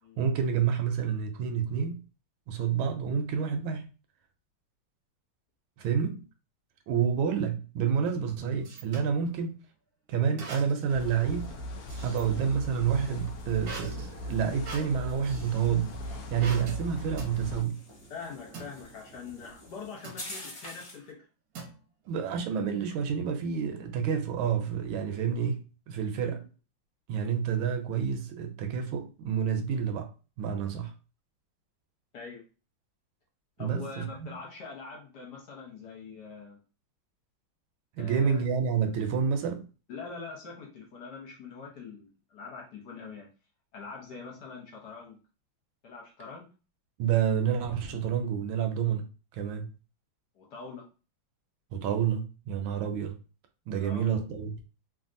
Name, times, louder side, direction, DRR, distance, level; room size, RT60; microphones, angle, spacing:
voice 1, 0.2-2.0 2.5-3.9 5.8-6.2 6.9-9.6 10.1-11.5 12.0-17.8 22.1-26.4 27.1-30.1 30.4-30.9 33.6-34.1 37.9-39.7 47.0-49.7 51.7-53.2 53.7-54.6, right 7 dB, 80° right, 1.3 m, -29 dB
sound 1, 8.1-9.2 10.4-11.0 11.3-12.6 13.6-15.6 16.4-16.8 17.2-17.4 18.5-18.7 20.0-20.3 21.5-22.1, right 3 dB, 60° right, 1.0 m, -43 dB
sound 2, 10.4-21.1, left 1 dB, 35° left, 1.1 m, -50 dB
sound 3, 10.9-17.6, equal, 80° left, 0.8 m, -39 dB
voice 2, 18.1-21.2 26.2-26.4 32.1-32.4 33.6-36.6 38.0-38.4 39.9-43.3 43.7-45.2 45.8-46.5 50.3-50.9 53.8-54.1, left 5 dB, 65° left, 1.2 m, -44 dB
3.3 x 2.4 x 2.5 m
omnidirectional pair, 2.3 m